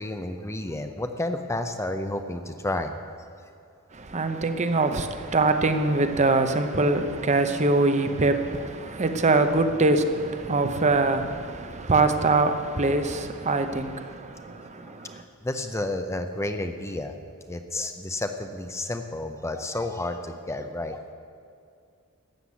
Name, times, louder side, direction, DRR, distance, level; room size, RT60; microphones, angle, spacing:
voice 1, 0.0-3.2 14.9-17.1 17.5-21.0, left 2 dB, 15° left, 0.6 m, -31 dB
voice 2, 3.9-15.2, right 3 dB, 35° right, 0.8 m, -23 dB
13.0 x 8.0 x 8.2 m
head